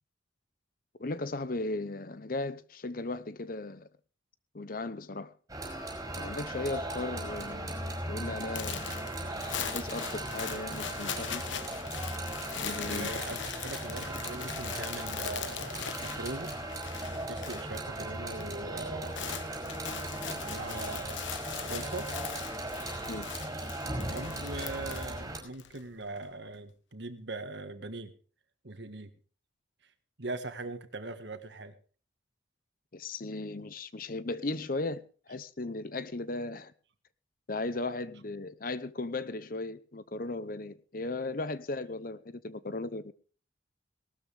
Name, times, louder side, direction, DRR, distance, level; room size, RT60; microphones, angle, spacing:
voice 1, 1.0-3.9 4.5-5.3 6.2-9.0 9.7-11.5 12.6-13.4 23.1-23.3 32.9-36.7 37.5-43.1, left 2 dB, 45° left, 0.8 m, -37 dB
sound 1, 5.5-25.4, right 1 dB, 15° right, 5.2 m, -38 dB
sound 2, 8.5-17.8 18.1-18.5 18.8-25.8, left 8 dB, 75° left, 1.1 m, -40 dB
voice 2, 12.9-16.5 17.3-19.5 20.3-21.3 21.6-22.1 24.0-28.1 28.6-29.1 30.2-31.7, right 2 dB, 65° right, 1.7 m, -41 dB
18.5 x 13.0 x 3.5 m
head